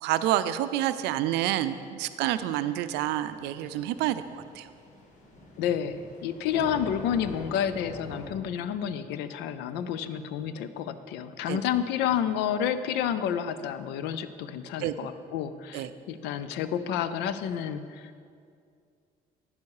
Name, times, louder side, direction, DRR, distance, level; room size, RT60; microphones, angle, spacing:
voice 1, 0.0-4.7 11.5-11.6 14.8-14.9 15.7-15.9, right 13 dB, 90° right, 12 dB, 0.4 m, -28 dB
Thunder / Rain, 3.0-8.3, left 1 dB, 45° left, 1.8 m, -45 dB
voice 2, 5.6-18.2, left 9 dB, 90° left, 12 dB, 0.5 m, -30 dB
9.6 x 7.0 x 4.8 m, 2.3 s
cardioid pair, 110°, 17 cm